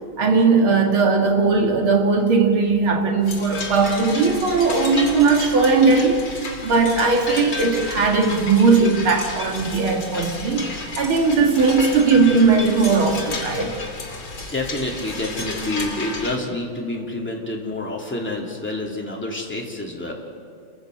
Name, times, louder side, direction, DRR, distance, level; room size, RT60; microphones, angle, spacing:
voice 1, 0.2-13.7, right 4 dB, 85° right, 3 dB, 3.0 m, -18 dB
sound 1, 3.2-16.4, left 3 dB, 60° left, 3.3 m, -32 dB
voice 2, 14.4-20.1, left 2 dB, 5° left, -1 dB, 2.9 m, -28 dB
29.5 x 14.5 x 7.9 m, 2.2 s
omnidirectional pair, 2.2 m